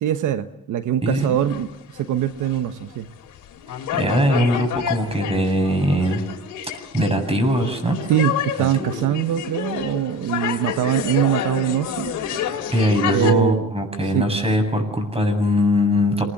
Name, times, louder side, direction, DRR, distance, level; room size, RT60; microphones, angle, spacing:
voice 1, 0.0-3.1 8.1-12.1 13.1-13.7 14.1-14.3, right 10 dB, 85° right, 9 dB, 1.2 m, -22 dB
voice 2, 1.0-1.3 3.9-6.2 6.9-8.0 8.6-9.1 12.7-16.2, equal, 20° right, 6 dB, 7.9 m, -21 dB
sound 1, 1.2-2.8 3.2-13.3, left 9 dB, 85° left, 3.3 m, -29 dB
27.5 x 20.5 x 7.2 m, 0.81 s
cardioid pair, 90°, 30 cm